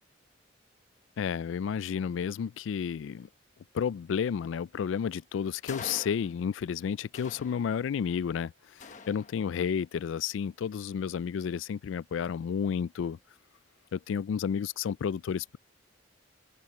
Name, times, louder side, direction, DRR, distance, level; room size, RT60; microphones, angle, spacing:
voice 1, 1.2-3.3 3.7-13.2 13.9-15.6, left 7 dB, 75° left, 0.3 m, -31 dB
sound 1, 5.7-6.7 7.1-8.1 8.8-9.8, left 4 dB, 40° left, 1.1 m, -46 dB
open air
head